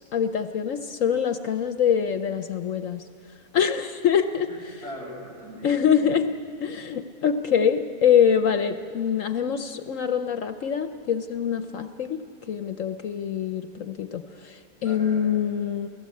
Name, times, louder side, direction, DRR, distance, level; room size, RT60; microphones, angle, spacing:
voice 1, 0.1-3.0 3.5-4.5 5.6-6.3 6.6-12.2 12.5-15.9, left 8 dB, 65° left, 9 dB, 1.0 m, -24 dB
voice 2, 4.5-6.2 14.8-15.3, equal, 40° right, -2 dB, 6.9 m, -41 dB
29.0 x 17.5 x 8.5 m, 2.6 s
omnidirectional pair, 1.6 m